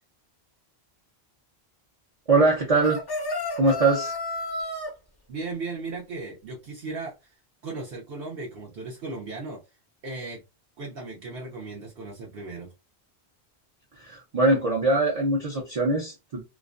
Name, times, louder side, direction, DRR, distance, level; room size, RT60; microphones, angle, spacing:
voice 1, 2.3-3.0 3.6-4.1 14.0-16.4, right 2 dB, 40° right, -3 dB, 0.6 m, -22 dB
sound 1, 2.8-4.9, left 2 dB, 35° left, 0.4 m, -31 dB
voice 2, 5.3-7.3 7.6-9.6 10.0-10.4 10.8-12.7, right 3 dB, 65° right, -3 dB, 0.8 m, -36 dB
2.4 x 2.1 x 2.4 m, 0.25 s
omnidirectional pair, 1.1 m